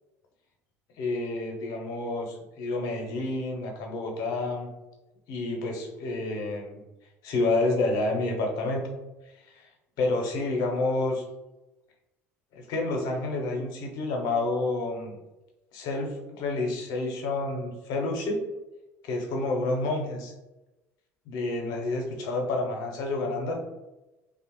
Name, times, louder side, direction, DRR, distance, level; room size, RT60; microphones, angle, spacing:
voice 1, 1.0-4.7 5.3-6.8 7.2-8.9 9.6-9.7 10.0-11.2 12.5-15.1 15.7-18.5 19.0-20.3 21.3-23.6, left 2 dB, 55° left, 1 dB, 0.6 m, -29 dB
3.0 x 2.1 x 2.9 m, 1.0 s
figure-of-eight pair, 60°, 8 cm